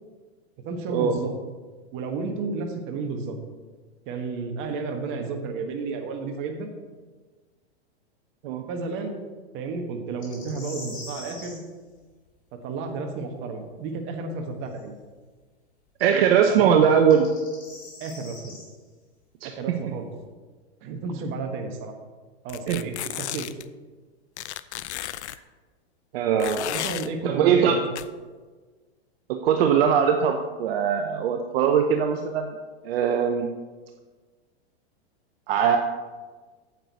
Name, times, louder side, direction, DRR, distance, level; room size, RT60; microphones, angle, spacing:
voice 1, 0.6-1.3 1.9-3.4 4.1-6.7 8.7-9.2 9.5-11.6 12.6-15.0 16.5-16.8 18.0-18.5 19.4-20.1 20.8-21.9 22.4-23.5 26.7-27.8, right 4 dB, 35° right, 5 dB, 1.3 m, -32 dB
sound 1, 10.2-11.6 14.7-14.8 16.9-18.6, left 2 dB, 25° left, 3.3 m, -42 dB
voice 2, 16.0-17.3 19.4-19.8 22.7-22.8 25.0-25.1 26.1-26.6 27.2-27.8 29.3-32.5 32.8-33.5 35.5-35.8, right 7 dB, 60° right, 5 dB, 0.8 m, -21 dB
sound 2, 22.5-23.6 24.4-25.4 26.4-27.1 28.0-28.1, left 13 dB, 85° left, 0.5 m, -33 dB
9.0 x 8.0 x 4.1 m, 1.4 s
hypercardioid pair, 130°, 33 cm